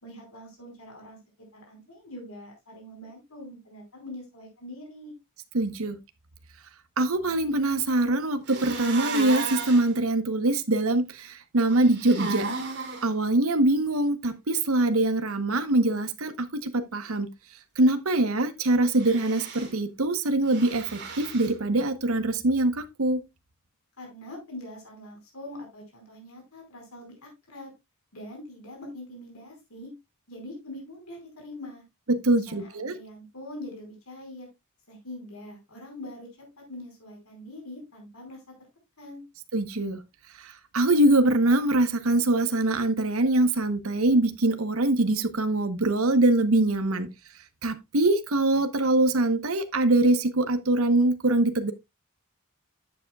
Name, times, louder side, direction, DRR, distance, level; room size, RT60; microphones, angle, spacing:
voice 1, 0.0-1.2 1.5-5.1 24.0-27.7 28.1-29.9 30.3-31.8 32.3-34.5 34.9-38.4 39.0-39.2, left 1 dB, 85° left, 4.7 m, -43 dB
voice 2, 5.5-6.0 7.0-12.5 13.0-17.3 17.8-23.2 32.1-33.0 39.5-40.0 40.4-47.1 47.6-51.7, right 2 dB, 80° right, 1.0 m, -23 dB
sound 1, 8.5-9.9 11.7-13.1 18.9-19.7 20.5-21.5, right 4 dB, 55° right, 2.6 m, -34 dB
11.5 x 7.8 x 2.3 m
head